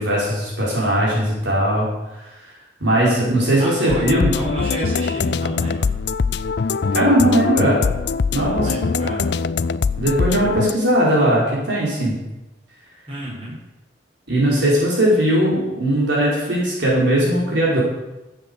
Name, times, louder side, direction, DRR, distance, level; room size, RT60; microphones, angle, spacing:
voice 1, 0.0-1.9 2.8-4.3 6.9-7.8 8.3-8.6 10.0-12.1 14.3-17.8, right 1 dB, 65° right, -5 dB, 4.9 m, -18 dB
voice 2, 3.6-5.9 8.4-9.3 13.1-13.6, right 1 dB, 30° right, -6 dB, 5.5 m, -30 dB
sound 1, 3.9-10.7, left 5 dB, 60° left, 0.4 m, -22 dB
13.0 x 8.4 x 7.1 m, 0.99 s
head